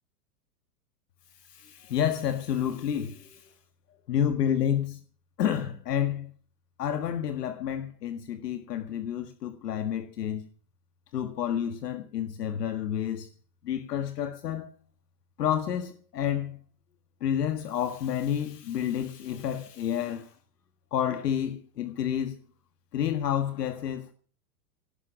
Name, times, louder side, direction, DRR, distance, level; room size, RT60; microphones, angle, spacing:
voice 1, 1.4-3.5 4.1-5.0 5.4-6.3 6.8-10.5 11.1-13.3 13.6-14.7 15.4-16.6 17.2-20.3 20.9-22.4 22.9-24.1, left 9 dB, 75° left, 1.8 m, -29 dB
18.5 x 10.5 x 5.9 m
hypercardioid pair, 125°, 48 cm